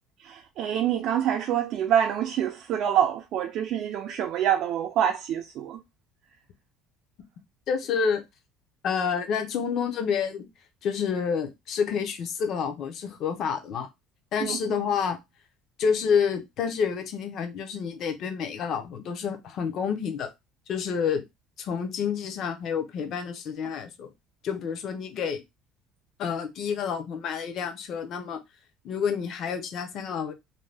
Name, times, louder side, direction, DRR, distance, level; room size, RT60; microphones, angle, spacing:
voice 1, 0.2-5.8 14.4-14.6, right 10 dB, 55° right, 0.3 m, -26 dB
voice 2, 7.7-8.2 8.8-10.5 10.8-13.9 14.3-15.2 15.8-20.3 20.7-21.2 21.6-24.1 24.4-25.4 26.2-28.4 28.8-30.3, left 6 dB, 45° left, 0.6 m, -28 dB
2.6 x 2.2 x 3.3 m
cardioid pair, 150°, 0 cm